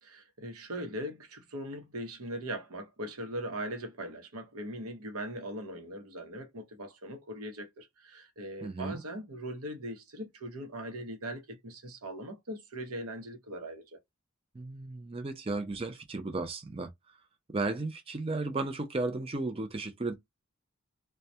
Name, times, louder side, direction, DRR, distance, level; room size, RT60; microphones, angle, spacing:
voice 1, 0.0-14.0, right 1 dB, 90° right, 0.8 m, -40 dB
voice 2, 8.6-9.0 14.5-16.9 17.5-20.1, right 3 dB, 25° right, 0.4 m, -34 dB
2.2 x 2.1 x 2.7 m
head